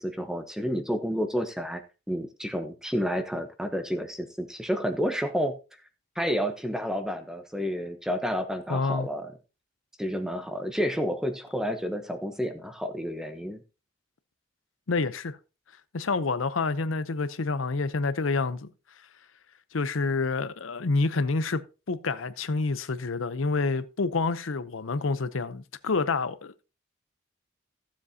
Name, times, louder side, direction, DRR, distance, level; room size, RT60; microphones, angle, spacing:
voice 1, 0.0-1.8 2.1-5.6 6.2-9.3 10.0-13.6, equal, 5° right, 0.9 m, -30 dB
voice 2, 8.7-9.1 14.9-15.4 15.9-18.7 19.7-21.6 21.9-26.6, left 3 dB, 85° left, 0.7 m, -28 dB
15.0 x 7.3 x 2.8 m
head